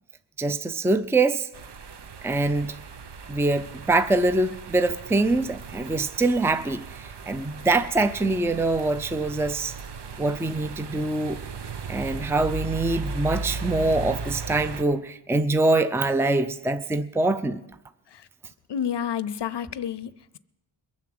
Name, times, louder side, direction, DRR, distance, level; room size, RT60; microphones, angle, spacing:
voice 1, 0.4-1.5 2.2-2.7 3.3-9.7 10.2-11.4 11.9-17.6, right 2 dB, 5° right, 0.5 m, -24 dB
sound 1, 1.5-14.8, right 4 dB, 60° right, 0.9 m, -37 dB
voice 2, 18.7-20.4, left 8 dB, 60° left, 0.7 m, -30 dB
22.0 x 7.4 x 7.7 m
wide cardioid pair, 80°, 46 cm